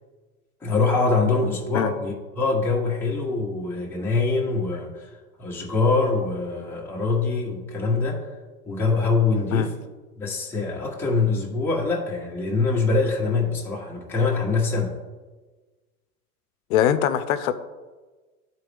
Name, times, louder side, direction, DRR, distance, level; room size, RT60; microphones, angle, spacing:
voice 1, 0.6-5.1 5.4-8.3 8.7-9.7 10.2-15.0, left 3 dB, 5° left, -4 dB, 1.1 m, -24 dB
voice 2, 16.7-17.5, left 10 dB, 65° left, 12 dB, 0.7 m, -22 dB
11.0 x 4.2 x 3.4 m, 1.3 s
hypercardioid pair, 135°, 46 cm